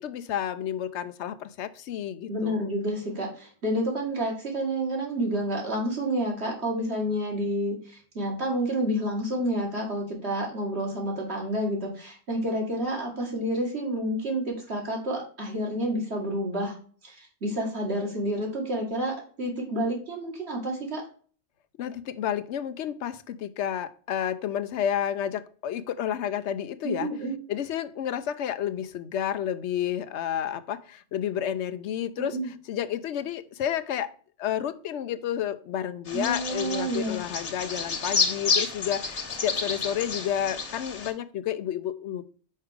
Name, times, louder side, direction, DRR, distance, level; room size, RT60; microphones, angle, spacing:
voice 1, 0.0-2.7 21.8-27.1 27.5-32.4 32.7-34.1 34.4-42.2, left 10 dB, 85° left, 12 dB, 0.9 m, -30 dB
voice 2, 2.3-16.8 17.0-21.0 26.8-27.4 32.3-32.5 36.1-37.2, right 1 dB, 70° right, -1 dB, 2.3 m, -29 dB
Bird vocalization bird call bird song, 36.1-41.1, left 5 dB, 60° left, 1.3 m, -30 dB
5.5 x 4.8 x 5.0 m, 0.44 s
omnidirectional pair, 1.1 m